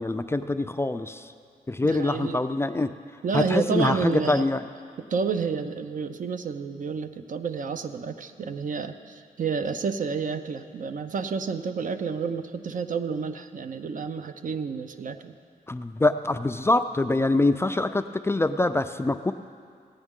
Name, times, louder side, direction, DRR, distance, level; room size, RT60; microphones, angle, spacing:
voice 1, 0.0-1.3 1.7-2.9 3.3-4.6 15.7-19.3, left 2 dB, 15° left, 9 dB, 0.3 m, -24 dB
voice 2, 1.8-2.4 3.2-4.5 5.1-15.3, right 5 dB, 55° right, 8 dB, 0.6 m, -30 dB
17.0 x 8.8 x 3.7 m, 2.2 s
cardioid pair, 90°, 16 cm